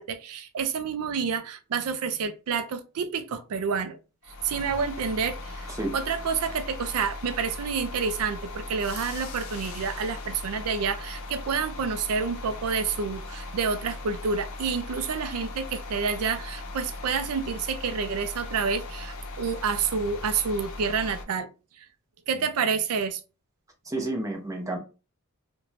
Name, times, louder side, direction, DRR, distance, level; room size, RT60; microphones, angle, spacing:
voice 1, 0.0-4.0 4.4-21.5 21.8-21.9 22.3-23.2, right 5 dB, 80° right, 0.4 m, -29 dB
sound 1, 4.2-21.3, left 2 dB, 70° left, 0.5 m, -38 dB
voice 2, 23.9-24.8, right 2 dB, 15° right, 0.6 m, -30 dB
2.5 x 2.2 x 3.1 m
head